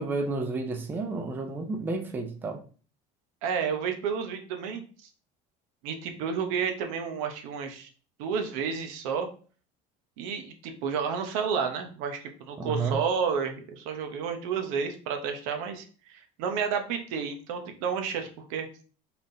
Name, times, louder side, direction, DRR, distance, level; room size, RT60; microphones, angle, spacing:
voice 1, 0.0-2.6 12.6-13.0, right 3 dB, 10° right, 0.4 m, -31 dB
voice 2, 3.4-4.8 5.8-7.9 8.2-9.3 10.2-18.7, right 6 dB, 85° right, 0.8 m, -31 dB
4.2 x 3.5 x 2.6 m
cardioid pair, 170°, 17 cm